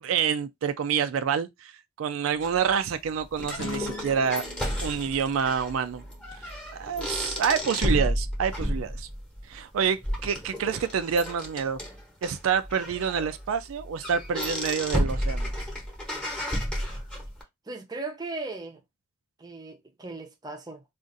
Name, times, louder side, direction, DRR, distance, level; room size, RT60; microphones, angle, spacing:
voice 1, 0.0-4.4 4.8-6.0 6.4-9.1 9.5-11.8 12.2-15.5, right 7 dB, 80° right, 0.4 m, -27 dB
sound 1, 2.4-17.4, equal, 5° left, 1.0 m, -32 dB
sound 2, 3.5-6.9, left 3 dB, 70° left, 0.8 m, -41 dB
voice 2, 17.7-18.8 19.4-20.8, right 3 dB, 20° right, 0.6 m, -37 dB
2.5 x 2.5 x 3.8 m
head